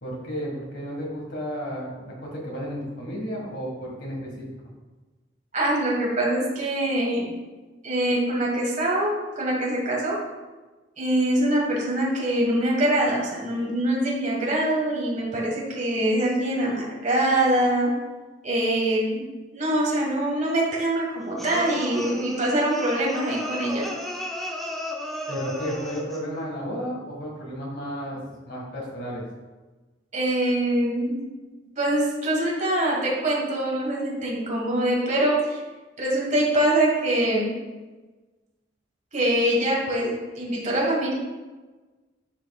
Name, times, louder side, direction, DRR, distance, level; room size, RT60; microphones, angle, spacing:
voice 1, 0.0-4.5 25.3-29.2, equal, 70° left, -2 dB, 1.8 m, -33 dB
voice 2, 5.5-7.3 7.8-10.2 11.0-17.9 18.4-19.3 19.5-23.9 30.1-31.2 31.8-35.6 36.0-37.5 39.1-41.1, right 1 dB, 40° right, -3 dB, 1.7 m, -24 dB
sound 1, 21.4-26.3, left 1 dB, ahead, 0.7 m, -33 dB
11.5 x 4.7 x 2.4 m, 1.2 s
head